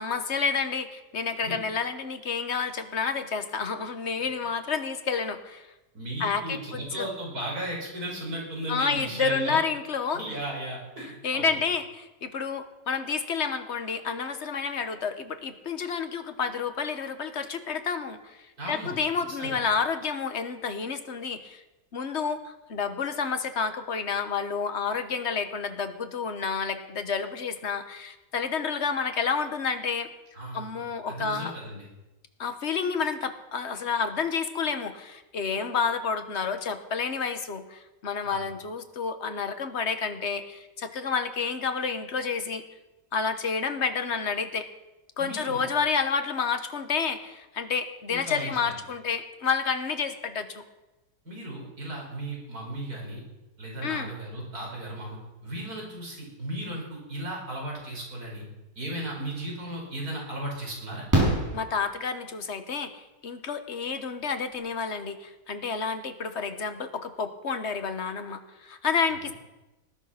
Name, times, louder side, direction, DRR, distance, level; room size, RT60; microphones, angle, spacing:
voice 1, 0.0-5.7 6.2-7.1 8.7-10.2 11.2-21.6 21.9-30.1 30.5-31.5 32.4-42.6 43.1-44.7 45.2-50.6 53.8-54.1 61.5-69.3, left 5 dB, 45° left, 9 dB, 1.4 m, -30 dB
voice 2, 5.9-9.6 10.1-11.6 18.6-19.0 19.4-19.6 30.4-31.9 38.2-38.5 45.2-45.7 48.1-48.7 51.2-53.2 53.6-58.5 58.8-61.1, right 1 dB, 55° right, -2 dB, 5.7 m, -36 dB
Fireworks, 59.4-59.5 61.1-62.4 64.2-64.3 64.5-64.6, right 1 dB, 10° right, 5.8 m, -26 dB
20.0 x 11.5 x 5.8 m, 1.0 s
omnidirectional pair, 1.9 m